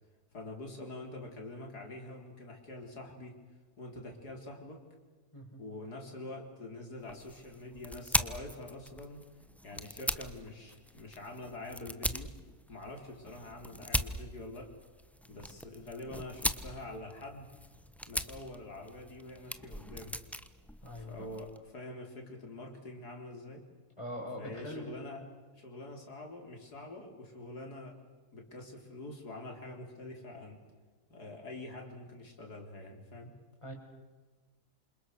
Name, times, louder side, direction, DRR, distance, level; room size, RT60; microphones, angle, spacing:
voice 1, 0.3-3.3 3.8-4.8 5.6-9.3 9.6-12.3 12.7-14.7 15.3-17.5 18.1-20.2 21.0-23.6 24.4-25.2 25.5-28.0 28.3-30.6 31.1-33.3, left 2 dB, 90° left, 2 dB, 4.4 m, -45 dB
sound 1, 7.0-21.6, equal, ahead, 0.8 m, -39 dB
voice 2, 20.8-21.3 24.0-25.0 33.6-33.7, equal, 20° left, 1 dB, 6.0 m, -42 dB
27.5 x 27.5 x 6.5 m, 1.3 s
omnidirectional pair, 1.6 m